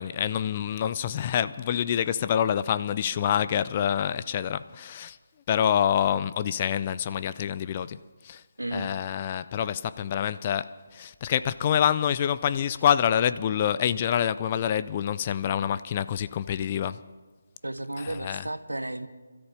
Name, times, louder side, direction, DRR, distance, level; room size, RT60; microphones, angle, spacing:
voice 1, 0.0-5.2 5.5-8.0 8.2-8.4 8.7-17.0 18.0-18.4, left 9 dB, 30° left, 0.5 m, -26 dB
voice 2, 8.6-8.9 17.6-19.1, right 1 dB, 90° right, 1.0 m, -33 dB
27.0 x 13.5 x 3.4 m
figure-of-eight pair, 155°, 0 cm